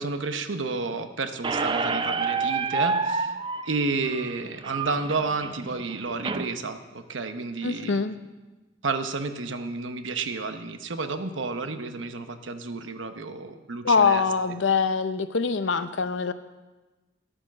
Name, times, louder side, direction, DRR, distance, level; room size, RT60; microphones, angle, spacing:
voice 1, 0.0-3.4 3.7-8.0 8.8-14.6, right 3 dB, 85° right, 9 dB, 0.9 m, -31 dB
Squeak, 1.4-6.4, right 4 dB, 25° right, 0.5 m, -29 dB
voice 2, 7.6-8.1 13.8-16.3, left 5 dB, 75° left, 12 dB, 0.6 m, -23 dB
12.0 x 8.8 x 6.2 m, 1.2 s
head